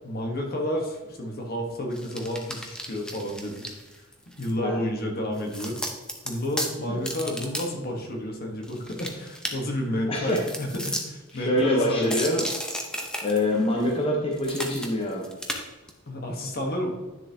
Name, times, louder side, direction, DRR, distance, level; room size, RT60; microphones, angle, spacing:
voice 1, 0.0-3.7 4.4-5.8 6.2-12.1 16.0-16.9, left 1 dB, 50° left, 2 dB, 1.3 m, -30 dB
gore gory blood smash flesh murder bone break, 1.9-4.5 5.4-6.7 7.0-7.6 7.9-8.0 8.6-9.5 10.3-11.0 11.3-11.4 12.0-14.0 14.3-15.6 15.9-16.0, equal, 5° left, 0.9 m, -34 dB
voice 2, 10.1-10.4 11.3-12.5 13.2-15.3, left 1 dB, 30° left, -1 dB, 1.0 m, -25 dB
10.0 x 6.8 x 2.9 m, 1.2 s
head